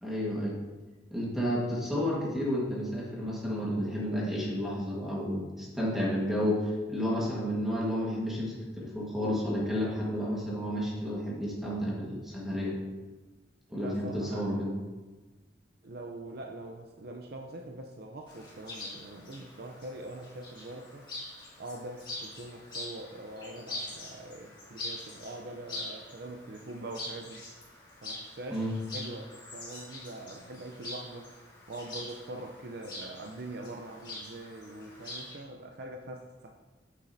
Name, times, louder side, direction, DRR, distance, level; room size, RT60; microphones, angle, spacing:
voice 1, 0.0-0.5 1.1-12.8 13.7-14.7 28.5-28.8, equal, ahead, -5 dB, 1.4 m, -31 dB
voice 2, 13.7-14.7 15.8-21.1 21.6-27.4 28.0-31.3 31.7-36.5, right 2 dB, 55° right, 2 dB, 0.6 m, -43 dB
Chirp tweet, 18.3-35.4, left 2 dB, 25° left, 2.1 m, -44 dB
9.0 x 7.3 x 2.7 m, 1.2 s
head